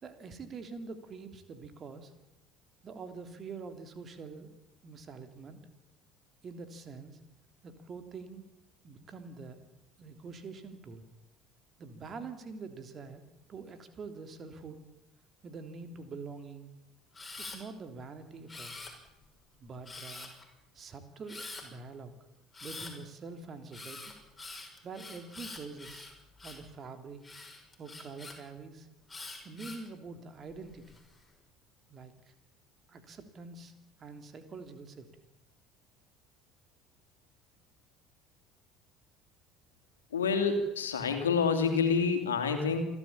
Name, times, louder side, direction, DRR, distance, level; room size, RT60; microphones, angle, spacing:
voice 1, 0.0-2.1 2.8-4.5 4.8-5.6 6.4-7.2 7.6-8.4 8.8-9.7 10.0-11.1 11.8-13.2 13.5-14.8 15.4-16.7 17.4-18.8 19.6-20.3 20.7-22.1 22.6-24.1 24.8-26.1 26.4-27.2 27.8-28.9 29.4-31.0 31.9-32.3 32.9-33.7 34.0-35.2, right 4 dB, 35° right, 8 dB, 3.2 m, -45 dB
Camera, 17.1-17.6 18.5-19.2 19.9-20.4 21.3-21.6 22.5-22.9 23.7-26.7 27.2-28.4 29.1-29.9 30.5-31.0, left 3 dB, 15° left, 6.0 m, -45 dB
voice 2, 40.1-42.9, left 5 dB, 80° left, 6 dB, 2.8 m, -28 dB
28.5 x 12.5 x 8.9 m, 0.92 s
figure-of-eight pair, 60°, 0 cm